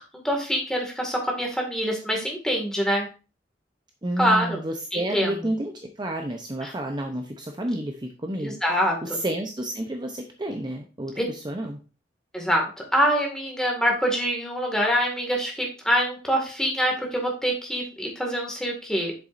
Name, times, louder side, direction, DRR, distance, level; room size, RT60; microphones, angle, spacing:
voice 1, 0.2-3.1 4.2-4.6 4.9-5.3 6.6-6.7 8.4-9.0 11.2-11.3 12.3-19.1, equal, 5° left, 0 dB, 2.0 m, -25 dB
voice 2, 4.0-11.8, right 1 dB, 25° right, 3 dB, 0.7 m, -30 dB
8.1 x 6.9 x 2.6 m, 0.34 s
head